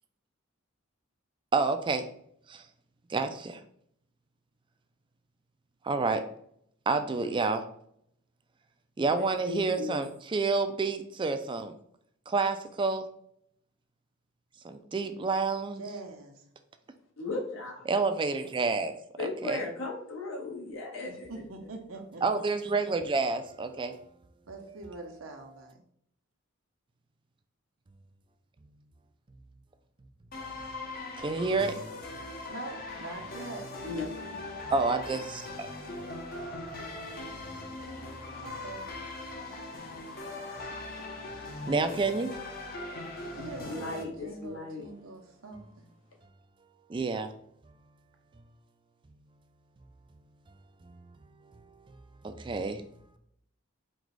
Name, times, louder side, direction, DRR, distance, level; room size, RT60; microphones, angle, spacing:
voice 1, 1.5-2.1 2.5-2.6 3.1-3.6 5.8-6.3 6.9-7.6 9.0-11.7 12.3-13.1 14.6-15.8 17.9-18.9 19.2-19.6 22.2-23.9 31.2-31.8 34.7-35.7 36.7-36.8 37.4-37.9 41.7-42.3 46.9-47.3 52.2-52.8, right 4 dB, 25° right, 0.4 m, -29 dB
voice 2, 9.2-10.1 17.2-17.8 19.2-21.3 33.8-34.1 34.3-34.4 43.6-44.8, left 3 dB, 75° left, 1.4 m, -37 dB
voice 3, 15.8-16.4 21.1-22.4 24.5-25.8 32.5-33.7 38.4-38.9 43.2-45.9, right 3 dB, 80° right, 0.8 m, -44 dB
sound 1, 30.3-44.0, left 2 dB, 45° left, 0.8 m, -40 dB
4.6 x 2.3 x 4.0 m
head